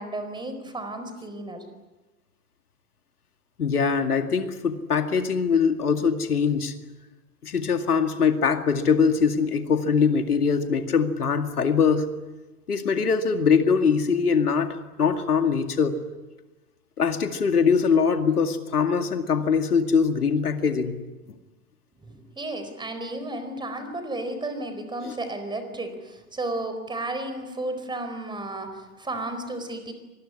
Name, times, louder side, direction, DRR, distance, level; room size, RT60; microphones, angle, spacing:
voice 1, 0.0-1.6 22.0-29.9, right 2 dB, 10° right, 8 dB, 4.3 m, -33 dB
voice 2, 3.6-6.7 7.4-12.1 12.7-16.0 17.0-21.0 25.0-25.1, left 6 dB, 75° left, 7 dB, 2.3 m, -22 dB
25.0 x 20.5 x 9.8 m, 1.1 s
figure-of-eight pair, 110°, 45 cm